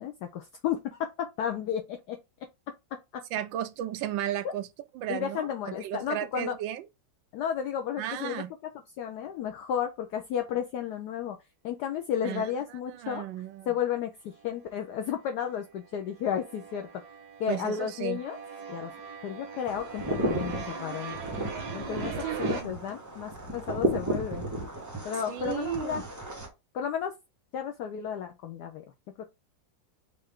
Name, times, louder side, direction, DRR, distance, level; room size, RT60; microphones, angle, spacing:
voice 1, 0.0-2.2 5.1-6.5 7.3-8.4 9.0-11.4 11.6-13.2 13.7-17.0 17.4-18.4 18.7-18.9 19.2-21.2 21.7-24.4 25.0-26.0 26.7-27.1 27.5-28.8, left 9 dB, 70° left, 1.0 m, -33 dB
voice 2, 3.3-4.7 4.9-5.5 5.8-6.9 8.0-8.5 12.2-12.5 12.9-13.8 17.5-18.2 22.2-22.8 25.3-26.0, right 12 dB, 80° right, 1.3 m, -34 dB
sound 1, 14.4-15.2 15.4-22.6, right 5 dB, 60° right, 2.0 m, -41 dB
sound 2, 19.7-26.5, right 1 dB, 15° right, 0.7 m, -33 dB
5.5 x 2.5 x 3.6 m
omnidirectional pair, 2.1 m